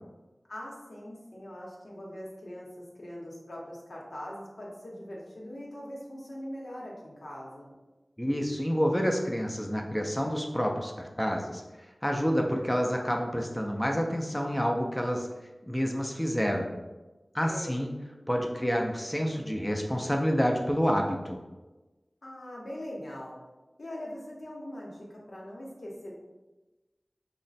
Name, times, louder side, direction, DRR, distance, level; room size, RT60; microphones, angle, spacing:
voice 1, 0.5-7.7 17.4-17.9 22.2-23.4 23.8-26.1, left 1 dB, 80° left, -4 dB, 0.8 m, -42 dB
voice 2, 8.2-15.3 15.7-16.7 17.3-17.9 18.3-21.4, equal, 10° left, 1 dB, 0.4 m, -28 dB
3.1 x 2.1 x 4.0 m, 1.1 s
wide cardioid pair, 40°, 0 cm